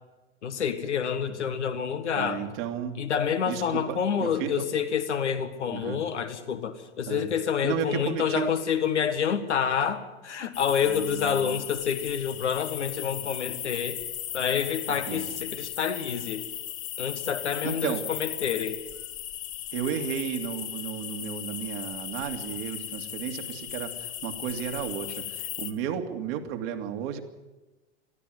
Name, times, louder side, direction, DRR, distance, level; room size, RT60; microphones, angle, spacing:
voice 1, 0.4-2.4 3.0-14.0 14.3-16.5 17.0-18.8, left 7 dB, 80° left, 8 dB, 1.8 m, -28 dB
voice 2, 2.2-3.0 3.5-4.7 5.7-6.0 7.1-7.3 7.6-8.5 10.9-11.6 14.9-15.3 17.6-18.0 19.7-27.2, right 8 dB, 55° right, 5 dB, 2.4 m, -33 dB
sound 1, 10.5-25.7, left 12 dB, 40° left, 1.7 m, -37 dB
20.5 x 13.5 x 9.3 m, 1.1 s
figure-of-eight pair, 85°, 34 cm